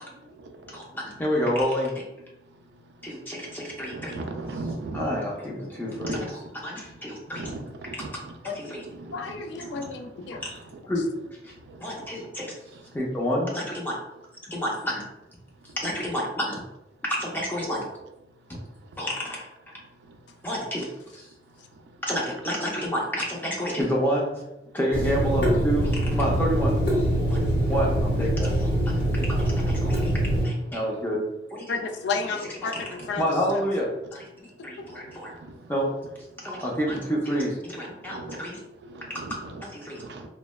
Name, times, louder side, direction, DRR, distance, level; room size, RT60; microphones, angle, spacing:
voice 1, 0.7-2.1 3.0-4.2 4.9-7.5 7.9-8.8 10.9-11.0 11.4-11.5 11.8-12.5 12.9-14.0 14.4-15.0 15.7-16.6 17.0-17.9 19.0-19.5 20.4-21.3 22.0-24.5 24.7-26.8 27.3-27.4 27.7-28.9 29.3-31.7 32.6-32.7 33.2-35.3 35.7-36.0 36.4-38.6 39.1-40.0, equal, 10° left, -3 dB, 0.5 m, -29 dB
voice 2, 3.9-5.0 7.4-8.1 9.1-9.2 9.8-9.9 38.1-38.4 38.9-39.3 40.0-40.3, right 3 dB, 75° right, 4 dB, 0.4 m, -36 dB
voice 3, 9.1-10.4 31.7-33.3 33.5-33.7 34.8-34.9, left 4 dB, 80° left, 5 dB, 0.3 m, -32 dB
Water tap faucet / Sink (filling or washing), 24.9-30.5, right 1 dB, 65° left, 0.9 m, -24 dB
3.1 x 2.1 x 2.2 m, 0.91 s
head